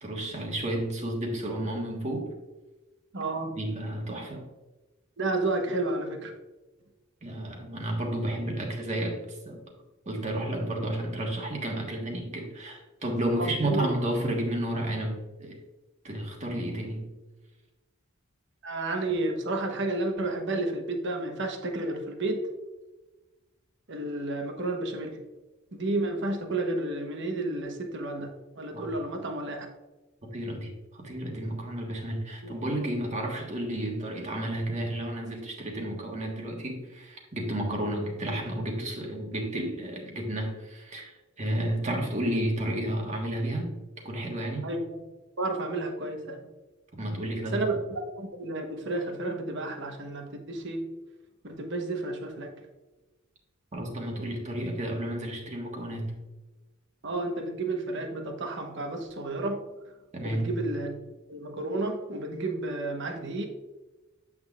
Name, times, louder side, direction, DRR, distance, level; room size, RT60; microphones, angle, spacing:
voice 1, 0.0-2.3 3.6-4.4 7.2-9.6 10.0-15.6 16.0-17.1 28.7-28.9 30.2-43.7 44.0-44.7 46.9-47.7 53.7-56.1 60.1-60.6, right 1 dB, 35° right, 0 dB, 1.4 m, -32 dB
voice 2, 3.1-3.6 5.2-6.3 13.4-13.9 18.6-22.4 23.9-25.2 25.7-29.7 32.4-32.5 44.6-45.0 45.4-46.4 47.5-50.8 51.4-52.5 57.0-59.6 60.2-63.5, right 2 dB, 60° right, 4 dB, 1.0 m, -31 dB
8.5 x 6.0 x 2.4 m, 1.1 s
head